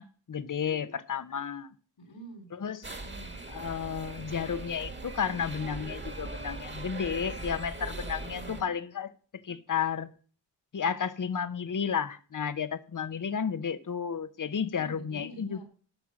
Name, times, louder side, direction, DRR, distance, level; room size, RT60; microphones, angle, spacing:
voice 1, 0.0-1.7 2.5-2.9 3.5-9.1 9.4-10.1 10.7-15.6, left 7 dB, 45° left, 0.9 m, -32 dB
voice 2, 2.0-2.5 2.9-3.4 8.3-8.7 14.8-15.6, right 1 dB, 75° left, 4.2 m, -47 dB
sound 1, 2.8-8.6, right 2 dB, 25° right, 1.7 m, -40 dB
13.0 x 5.5 x 6.1 m
wide cardioid pair, 75°, 45 cm